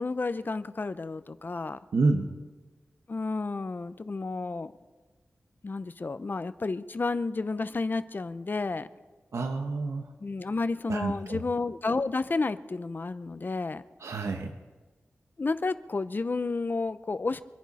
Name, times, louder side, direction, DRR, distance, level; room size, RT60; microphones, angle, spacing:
voice 1, 0.0-1.8 3.1-4.7 5.6-8.9 10.2-13.8 15.4-17.4, left 3 dB, 45° left, 13 dB, 0.6 m, -31 dB
voice 2, 1.9-2.3 9.3-10.1 10.9-11.4 14.0-14.6, right 3 dB, 90° right, 4 dB, 1.0 m, -28 dB
25.5 x 10.5 x 4.2 m, 1.3 s
wide cardioid pair, 90°, 5 cm